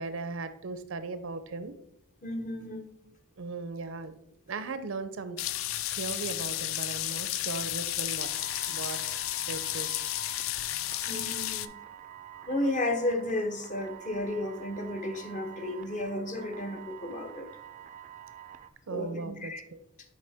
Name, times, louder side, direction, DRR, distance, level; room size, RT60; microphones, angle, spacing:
voice 1, 0.0-1.8 3.4-4.1 4.5-5.4 5.9-8.3 8.7-9.0 9.5-9.9 12.3-12.4 18.9-19.6, right 3 dB, 80° right, 12 dB, 0.6 m, -37 dB
voice 2, 2.2-2.9 11.1-11.8 12.5-17.5 18.9-19.6, left 1 dB, 40° left, 6 dB, 0.7 m, -33 dB
sound 1, 5.4-11.7, left 14 dB, 85° left, 0.3 m, -32 dB
sound 2, 8.2-18.7, right 10 dB, 40° right, 0.3 m, -47 dB
6.6 x 4.7 x 3.4 m, 0.73 s
head